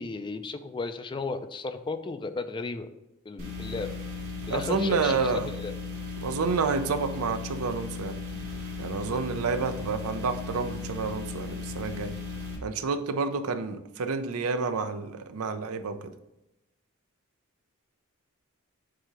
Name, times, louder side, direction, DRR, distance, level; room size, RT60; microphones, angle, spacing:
voice 1, 0.0-2.9 3.3-3.9 4.5-5.7, left 3 dB, 20° left, 10 dB, 0.3 m, -34 dB
sound 1, 3.4-12.6, left 4 dB, 60° right, 2.3 m, -37 dB
voice 2, 4.5-5.5 6.2-8.1 8.8-12.1 12.6-16.1, right 4 dB, 85° right, 9 dB, 0.5 m, -29 dB
7.5 x 2.8 x 5.0 m, 0.90 s
head